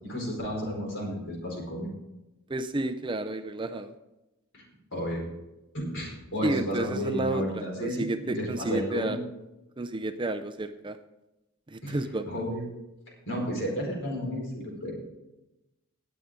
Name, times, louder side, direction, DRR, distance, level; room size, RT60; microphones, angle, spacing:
voice 1, 0.0-1.9 4.5-4.6 4.9-5.2 5.7-9.2 11.8-12.0 12.2-12.6 13.3-14.9, equal, 60° left, -1 dB, 4.8 m, -32 dB
voice 2, 2.5-3.9 6.4-9.2 9.8-11.0 11.7-12.3, right 2 dB, 20° right, 9 dB, 0.5 m, -31 dB
18.0 x 8.2 x 3.8 m, 0.97 s
head